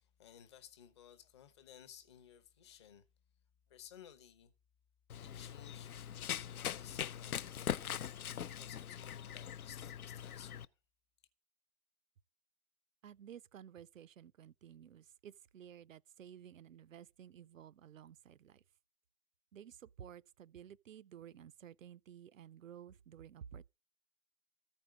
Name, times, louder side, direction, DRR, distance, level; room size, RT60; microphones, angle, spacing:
voice 1, 0.0-3.0 3.7-4.5 5.2-5.9 6.4-7.5 7.9-10.7, left 9 dB, 20° left, 0.6 m, -58 dB
Run, 5.1-10.6, left 9 dB, 65° left, 0.6 m, -42 dB
voice 2, 13.0-18.6 19.5-23.7, right 9 dB, 55° right, 0.5 m, -54 dB
14.0 x 5.2 x 8.5 m
figure-of-eight pair, 140°, 47 cm